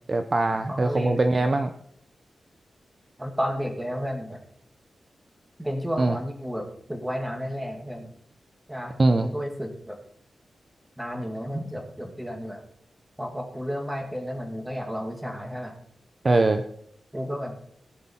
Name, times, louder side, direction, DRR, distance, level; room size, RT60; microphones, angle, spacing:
voice 1, 0.1-1.7 6.0-6.1 9.0-9.3 16.2-16.7, right 2 dB, 30° right, 8 dB, 0.6 m, -22 dB
voice 2, 0.7-1.5 3.2-4.4 5.6-8.1 8.7-10.0 11.0-12.6 13.2-15.8 17.1-17.5, equal, 5° right, 4 dB, 2.1 m, -32 dB
18.0 x 7.5 x 4.4 m, 0.68 s
wide cardioid pair, 155°, 0 cm